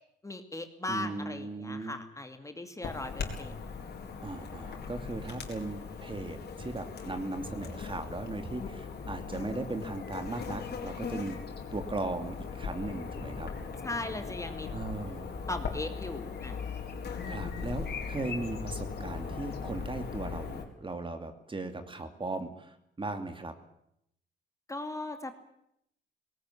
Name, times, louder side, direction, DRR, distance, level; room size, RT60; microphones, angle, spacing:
voice 1, 0.2-4.0 13.8-14.7 15.5-16.6 24.7-25.3, left 2 dB, 15° left, 7 dB, 2.4 m, -38 dB
voice 2, 0.9-2.0 4.2-11.4 11.7-13.5 14.7-15.4 17.3-23.5, right 2 dB, 25° right, 8 dB, 2.6 m, -37 dB
Chirp tweet / Buzz, 2.8-20.6, left 5 dB, 55° left, 4.4 m, -39 dB
19.5 x 18.0 x 9.9 m, 0.77 s
cardioid pair, 90°, 20 cm